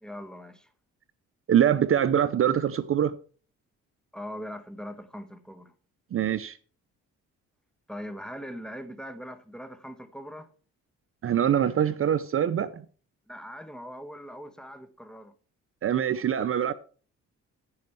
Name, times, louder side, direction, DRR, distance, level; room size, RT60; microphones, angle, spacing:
voice 1, 0.0-0.7 4.1-5.7 7.9-10.5 13.3-15.3, equal, ahead, 1.4 m, -41 dB
voice 2, 1.5-3.1 6.1-6.6 11.2-12.9 15.8-16.7, right 9 dB, 45° right, 0.6 m, -24 dB
15.5 x 5.2 x 4.7 m
cardioid pair, 90°, 30 cm